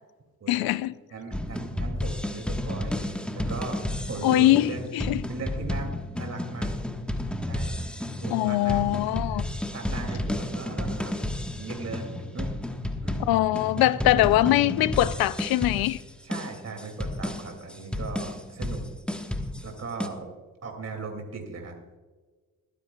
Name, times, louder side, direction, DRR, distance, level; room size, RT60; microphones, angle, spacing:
voice 1, 0.5-0.9 4.2-5.2 8.3-9.4 13.3-16.0, left 15 dB, 85° left, 0.5 m, -22 dB
voice 2, 1.1-3.8 4.1-4.9 5.3-6.7 7.4-7.8 8.2-9.0 9.3-11.2 11.6-12.5 13.0-13.2 16.2-18.8 19.6-20.3 20.6-21.8, right 4 dB, 45° right, 2.6 m, -38 dB
sound 1, 1.3-20.1, left 1 dB, 5° left, 1.3 m, -32 dB
21.5 x 10.0 x 2.3 m
supercardioid pair, 50°, 35 cm